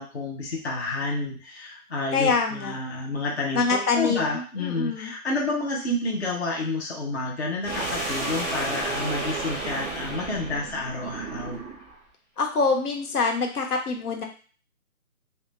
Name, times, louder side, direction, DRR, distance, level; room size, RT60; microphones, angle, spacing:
voice 1, 0.0-11.6, left 2 dB, 50° left, -2 dB, 0.5 m, -29 dB
voice 2, 2.1-2.7 3.5-5.1 12.4-14.2, left 4 dB, 85° left, 2 dB, 0.8 m, -25 dB
sound 1, 7.6-11.9, right 2 dB, ahead, 0.7 m, -32 dB
2.1 x 2.1 x 3.1 m, 0.40 s
hypercardioid pair, 180°, 44 cm